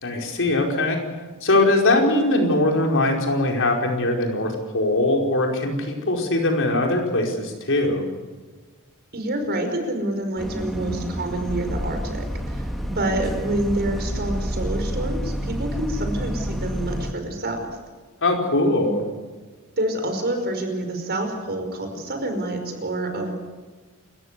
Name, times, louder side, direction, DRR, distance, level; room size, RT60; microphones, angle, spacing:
voice 1, 0.0-1.0 1.4-8.0 18.2-19.0, left 2 dB, 60° left, 2 dB, 4.9 m, -21 dB
voice 2, 9.1-17.7 18.8-18.9 19.8-23.3, right 1 dB, 50° right, 5 dB, 5.2 m, -27 dB
Bus, 10.4-17.1, equal, ahead, 2.1 m, -29 dB
29.5 x 15.0 x 8.3 m, 1.3 s
head